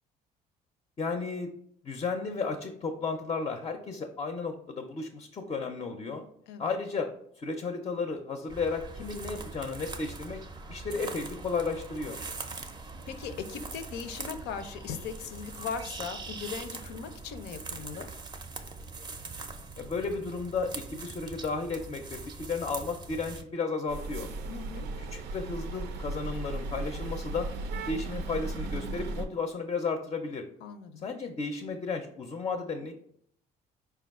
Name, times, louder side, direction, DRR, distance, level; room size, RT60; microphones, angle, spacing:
voice 1, 1.0-1.5 1.8-6.2 6.6-7.1 7.4-10.4 10.7-12.2 19.8-24.3 24.8-24.9 25.1-27.5 27.9-30.5 31.0-33.0, left 4 dB, 30° left, 4 dB, 0.5 m, -33 dB
sound 1, 8.5-23.4, right 3 dB, 25° right, 0.5 m, -42 dB
voice 2, 13.1-18.1 24.5-24.9 30.6-31.0, left 6 dB, 80° left, 9 dB, 0.5 m, -39 dB
sound 2, 23.9-29.3, right 2 dB, 85° right, 0.5 m, -36 dB
4.6 x 2.2 x 3.5 m, 0.67 s
cardioid pair, 110°, 17 cm